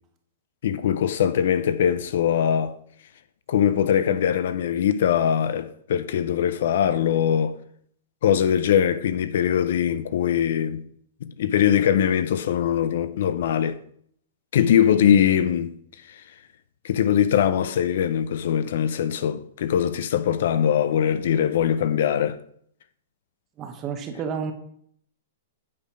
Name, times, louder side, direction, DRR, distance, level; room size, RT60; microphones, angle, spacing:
voice 1, 0.6-2.8 3.5-7.6 8.2-10.8 11.2-13.8 14.5-15.7 16.8-22.4, left 9 dB, 55° left, 0.5 m, -22 dB
voice 2, 23.6-24.5, right 6 dB, 20° right, 0.8 m, -30 dB
8.5 x 4.2 x 5.4 m
hypercardioid pair, 170°, 0 cm